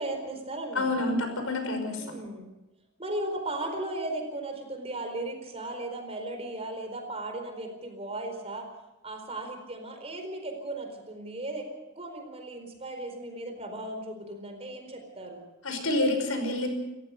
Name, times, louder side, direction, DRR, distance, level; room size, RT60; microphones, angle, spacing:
voice 1, 0.0-1.1 2.0-2.5 3.0-8.7 9.0-11.7 12.0-15.4, right 2 dB, 30° right, 5 dB, 4.4 m, -36 dB
voice 2, 0.8-2.1 15.6-16.7, left 2 dB, 80° left, 5 dB, 5.6 m, -28 dB
29.0 x 15.0 x 6.7 m, 0.99 s
head